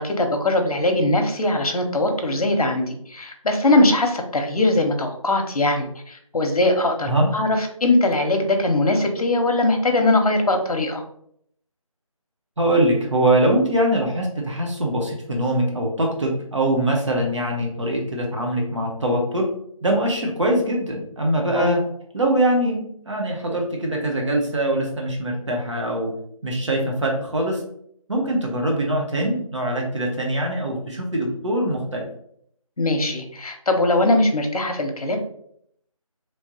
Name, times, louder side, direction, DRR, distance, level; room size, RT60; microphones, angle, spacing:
voice 1, 0.0-11.0 21.6-21.7 32.8-35.2, left 2 dB, 85° left, 4 dB, 0.8 m, -21 dB
voice 2, 12.6-19.5 19.8-21.8 22.1-26.1 26.4-27.6 28.1-32.1, right 1 dB, 55° right, 0 dB, 1.0 m, -22 dB
3.3 x 3.1 x 2.8 m, 0.68 s
figure-of-eight pair, 175°, 18 cm